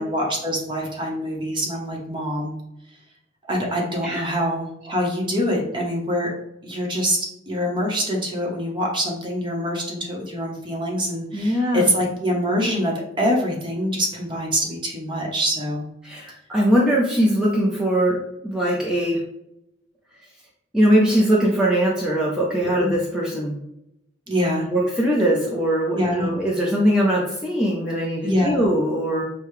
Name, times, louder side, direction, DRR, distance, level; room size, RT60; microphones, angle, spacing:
voice 1, 0.0-2.5 3.5-6.3 6.6-7.2 7.5-15.8 22.7-22.9 24.3-24.7 25.9-26.3 28.2-28.7, equal, 25° right, -1 dB, 1.0 m, -24 dB
voice 2, 11.3-11.8 16.0-18.2 18.4-19.2 20.7-23.5 24.7-29.2, equal, 5° right, -6 dB, 0.7 m, -21 dB
6.6 x 2.3 x 3.2 m, 0.84 s
head